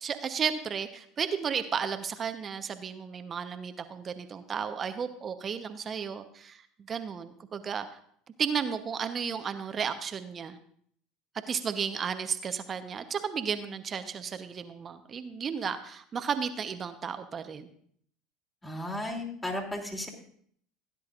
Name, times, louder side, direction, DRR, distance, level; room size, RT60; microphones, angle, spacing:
voice 1, 0.0-7.9 8.4-10.6 11.5-17.7, right 6 dB, 35° right, 9 dB, 1.0 m, -33 dB
voice 2, 18.6-20.1, left 1 dB, 15° left, 0 dB, 2.8 m, -34 dB
16.5 x 10.5 x 2.5 m, 0.62 s
hypercardioid pair, 80°, 0 cm